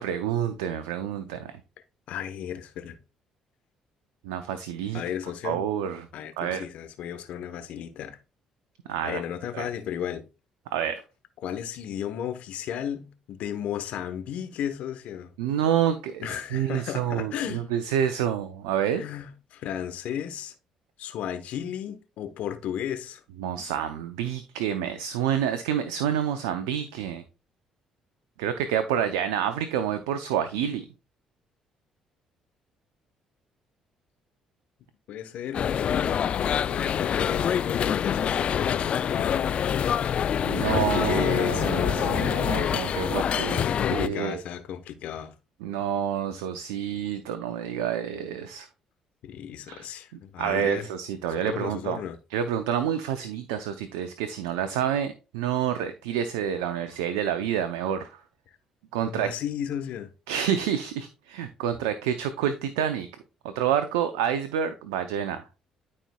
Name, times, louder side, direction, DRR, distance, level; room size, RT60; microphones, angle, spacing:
voice 1, 0.0-1.6 4.2-5.0 5.4-6.1 6.4-6.6 8.9-9.2 9.5-9.7 10.7-11.0 15.4-19.0 23.3-27.2 28.4-30.9 40.4-44.4 45.6-48.7 49.7-49.9 50.4-52.0 52.3-58.2 58.9-59.3 60.3-63.1 63.4-65.4, right 9 dB, 85° right, 0.5 m, -28 dB
voice 2, 2.1-3.0 4.9-5.6 6.1-8.2 9.0-10.2 11.4-15.3 16.2-17.7 18.9-20.5 21.0-23.2 35.1-36.1 36.6-39.7 40.5-42.3 43.5-45.3 49.2-50.9 51.5-52.2 59.1-60.1, left 9 dB, 70° left, 1.0 m, -34 dB
sound 1, 35.5-44.1, left 8 dB, 55° left, 0.3 m, -26 dB
12.5 x 4.3 x 2.3 m
hypercardioid pair, 55°, 2 cm